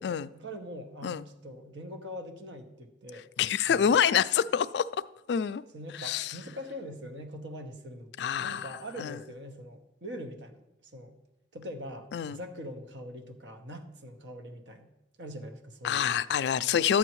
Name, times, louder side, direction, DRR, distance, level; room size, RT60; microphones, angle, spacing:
voice 1, 0.3-3.3 3.7-3.9 5.7-11.1 11.5-14.9 15.2-16.1, equal, 80° right, 5 dB, 1.0 m, -43 dB
voice 2, 3.4-4.8 5.3-5.6 6.0-6.3 8.2-8.7 9.0-9.2 12.1-12.4 15.8-17.0, left 8 dB, 65° left, 14 dB, 0.3 m, -26 dB
12.0 x 8.4 x 3.1 m, 0.92 s
head